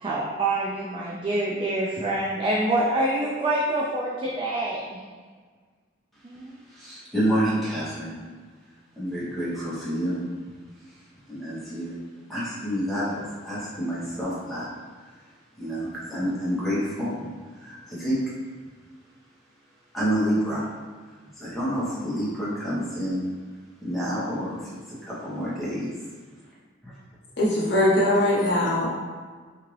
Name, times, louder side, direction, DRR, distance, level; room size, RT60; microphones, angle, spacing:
voice 1, 0.0-5.0 6.2-6.5, right 1 dB, 30° right, -4 dB, 0.4 m, -26 dB
voice 2, 6.7-8.1 9.0-10.3 11.3-11.9 12.3-14.7 15.6-17.3 17.6-18.2 19.9-20.7 21.4-23.3 23.8-24.7 25.0-25.9 26.8-26.9, equal, ahead, -10 dB, 1.1 m, -28 dB
voice 3, 27.4-28.9, left 1 dB, 65° left, -4 dB, 0.9 m, -21 dB
3.7 x 2.8 x 3.1 m, 1.5 s
head